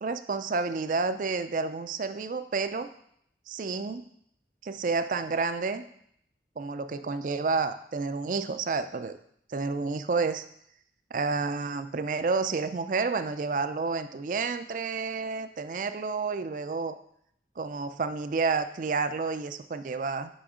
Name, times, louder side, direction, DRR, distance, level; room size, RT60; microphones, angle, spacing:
voice 1, 0.0-2.9 3.5-4.0 4.6-5.8 6.6-9.2 9.5-10.4 11.1-17.0 17.6-20.3, right 4 dB, 45° right, 11 dB, 0.4 m, -30 dB
6.1 x 5.1 x 4.9 m, 0.71 s
head